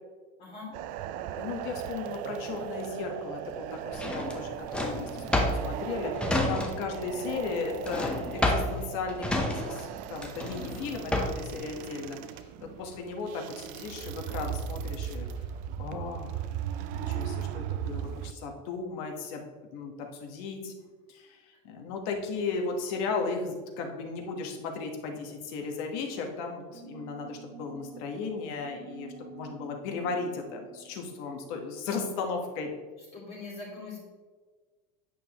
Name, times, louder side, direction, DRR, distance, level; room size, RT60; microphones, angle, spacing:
voice 1, 0.4-0.7 17.0-17.5 33.1-34.0, left 3 dB, 30° left, -6 dB, 2.3 m, -43 dB
sound 1, 0.7-18.3, right 10 dB, 45° right, 0.4 m, -38 dB
voice 2, 1.4-15.3 15.8-16.5 16.9-19.4 19.7-20.7 21.1-32.7, left 4 dB, 60° left, 3 dB, 1.3 m, -36 dB
Drawer open or close, 3.9-7.0 7.3-11.5, left 1 dB, 5° left, 0.8 m, -30 dB
sound 2, 26.7-31.9, right 4 dB, 80° right, 1.7 m, -49 dB
9.0 x 6.4 x 3.0 m, 1.4 s
cardioid pair, 160°, 19 cm